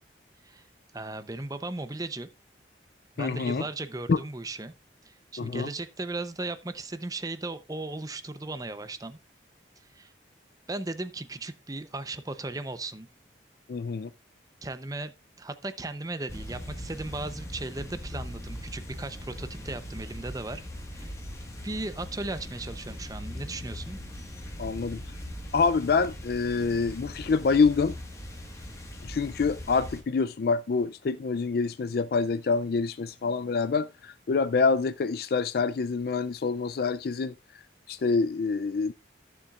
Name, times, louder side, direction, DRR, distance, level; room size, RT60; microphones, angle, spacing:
voice 1, 0.9-2.3 3.2-4.7 5.0-9.2 9.9-10.1 10.7-13.1 14.6-20.7 20.9-21.1 21.6-24.0, right 2 dB, 20° right, 0.7 m, -36 dB
voice 2, 3.2-3.6 4.1-4.2 5.4-5.7 13.7-14.1 24.6-25.0 25.5-27.9 29.0-37.3 37.9-38.9, left 4 dB, 55° left, 0.4 m, -26 dB
sound 1, 16.3-30.0, equal, 15° left, 1.5 m, -40 dB
15.0 x 7.1 x 2.4 m
head